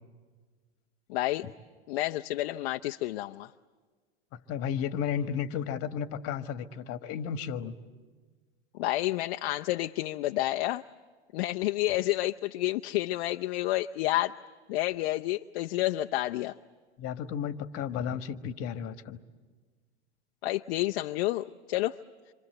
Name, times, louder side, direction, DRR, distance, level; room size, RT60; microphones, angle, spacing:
voice 1, 1.1-1.5 1.9-3.5 8.7-10.8 11.3-14.4 14.7-16.6 20.4-22.0, left 16 dB, 60° left, 6 dB, 0.7 m, -30 dB
voice 2, 4.5-7.7 17.0-19.2, left 8 dB, 40° left, 9 dB, 1.5 m, -33 dB
27.0 x 26.0 x 8.0 m, 1.4 s
hypercardioid pair, 100°, 34 cm